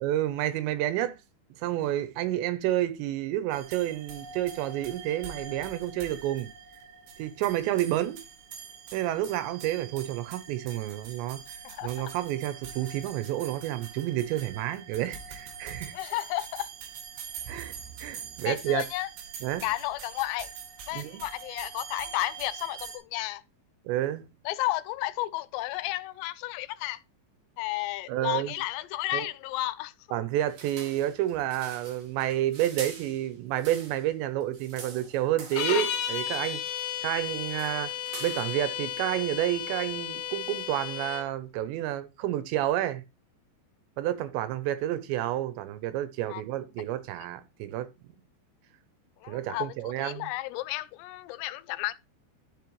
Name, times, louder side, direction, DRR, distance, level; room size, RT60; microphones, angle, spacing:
voice 1, 0.0-1.2 1.6-6.5 7.2-8.2 8.9-16.0 17.5-18.8 19.4-19.6 20.9-21.2 23.9-24.2 28.1-28.6 29.1-29.3 30.1-36.6 37.0-37.9 38.2-43.0 44.0-47.9 49.3-50.3, right 13 dB, 90° right, 3.1 m, -30 dB
sound 1, 3.5-23.0, right 7 dB, 75° right, 3.6 m, -44 dB
voice 2, 11.6-12.1 15.9-16.7 18.5-19.1 19.6-20.5 20.9-23.4 24.5-27.0 27.6-29.9 46.3-46.4 49.2-51.9, left 17 dB, 90° left, 2.8 m, -32 dB
sound 2, 30.5-34.1 34.4-35.9 36.3-36.9 37.2-38.7, right 5 dB, 50° right, 2.3 m, -45 dB
sound 3, 35.5-41.3, left 10 dB, 70° left, 2.7 m, -33 dB
12.0 x 5.4 x 3.1 m
omnidirectional pair, 5.0 m